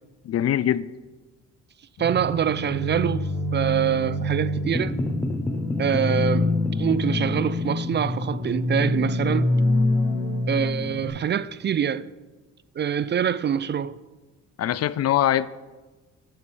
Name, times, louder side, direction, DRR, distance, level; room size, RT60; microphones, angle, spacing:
voice 1, 0.2-0.9 14.6-15.5, left 11 dB, 55° left, 0.4 m, -22 dB
sound 1, 2.0-11.1, left 2 dB, 85° left, 2.9 m, -26 dB
voice 2, 2.0-5.0 5.8-6.5 6.8-9.5 10.5-12.1 12.8-14.0, right 8 dB, 35° right, 0.4 m, -25 dB
sound 2, 4.6-11.2, left 1 dB, 5° left, 0.8 m, -33 dB
12.5 x 10.5 x 3.3 m
cardioid pair, 90°, 30 cm